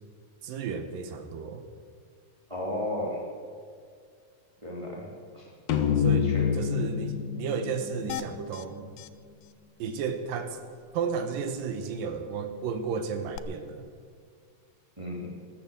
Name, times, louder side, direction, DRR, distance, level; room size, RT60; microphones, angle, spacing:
voice 1, 0.4-1.6 6.0-8.9 9.8-10.6 10.9-13.9, right 6 dB, 75° right, 8 dB, 2.6 m, -33 dB
voice 2, 2.5-3.2 4.6-5.5 6.1-6.5 15.0-15.3, left 1 dB, 10° right, -3 dB, 2.4 m, -34 dB
sound 1, 5.7-9.2, left 7 dB, 65° left, 1.8 m, -28 dB
sound 2, 8.1-8.7 9.0-9.1 9.4-9.5 9.8-10.0 13.3-13.4, left 12 dB, 85° left, 2.5 m, -38 dB
14.5 x 13.5 x 7.0 m, 2.1 s
omnidirectional pair, 4.3 m